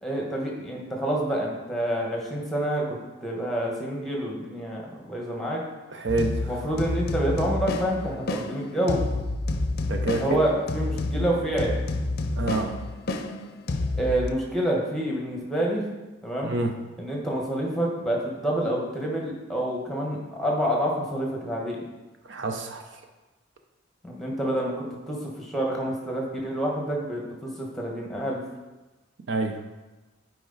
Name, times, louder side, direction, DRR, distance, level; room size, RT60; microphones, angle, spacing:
voice 1, 0.0-5.6 6.5-9.0 10.2-11.8 14.0-15.8 16.2-16.5 17.0-21.8 24.0-28.4, right 1 dB, ahead, -2 dB, 1.3 m, -28 dB
voice 2, 6.0-6.4 9.9-10.2 12.4-12.7 16.4-16.7 22.3-22.8 29.3-29.6, right 2 dB, 60° right, 4 dB, 0.6 m, -27 dB
sound 1, 6.1-14.3, left 2 dB, 50° left, 0.5 m, -29 dB
9.1 x 4.9 x 4.0 m, 1.1 s
head